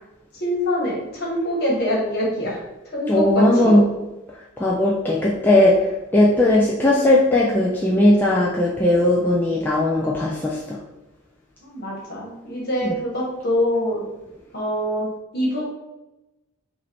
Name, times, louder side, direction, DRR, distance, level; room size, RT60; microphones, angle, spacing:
voice 1, 0.3-3.8 11.6-14.0 14.5-15.1 15.3-15.6, equal, 45° left, -3 dB, 1.4 m, -24 dB
voice 2, 3.1-3.9 4.6-10.8, left 1 dB, 10° left, -5 dB, 0.4 m, -18 dB
5.5 x 2.6 x 3.4 m, 0.99 s
head